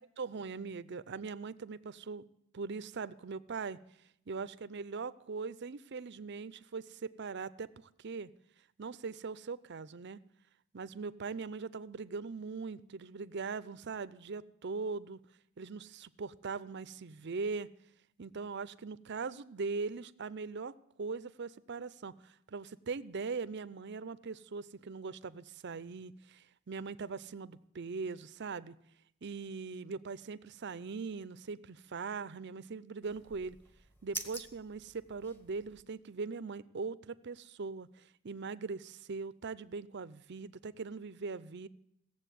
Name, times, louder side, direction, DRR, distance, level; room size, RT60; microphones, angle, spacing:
voice 1, 0.2-2.2 2.5-3.8 4.3-7.7 8.0-8.3 8.8-10.2 10.7-15.2 15.6-17.7 18.2-20.7 21.0-28.7 29.2-33.6 34.0-41.7, right 4 dB, 55° right, 15 dB, 0.6 m, -41 dB
Lizard eye blink, 33.0-35.8, right 1 dB, 10° left, 1.3 m, -47 dB
16.5 x 7.5 x 9.2 m, 0.75 s
head